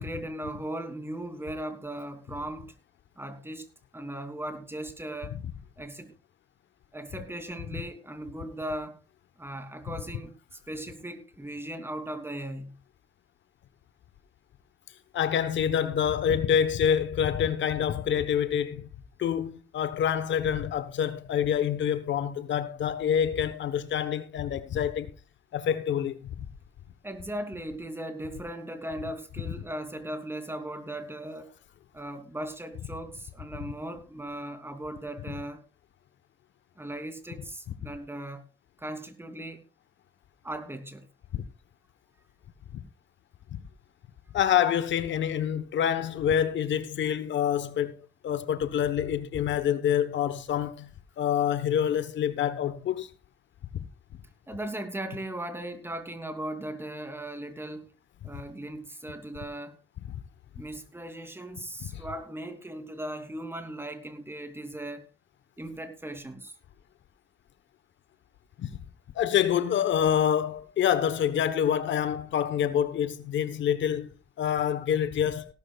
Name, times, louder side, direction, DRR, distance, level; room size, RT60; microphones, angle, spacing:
voice 1, 0.0-2.7 3.2-3.7 3.9-5.4 5.8-6.1 6.9-9.0 9.4-10.3 10.7-12.8 27.0-31.6 31.9-35.6 36.8-38.4 38.8-39.6 40.4-41.1 54.5-57.9 58.2-59.8 60.6-65.1 65.6-66.5, right 1 dB, 10° right, 2.9 m, -38 dB
voice 2, 15.1-18.9 19.2-25.1 25.5-26.5 41.3-41.4 42.7-42.8 43.5-43.6 44.3-48.0 48.2-50.9 51.2-53.1 60.1-60.2 61.9-62.0 68.6-68.8 69.1-75.5, left 9 dB, 70° left, 1.1 m, -27 dB
18.0 x 12.5 x 2.4 m
cardioid pair, 90°, 20 cm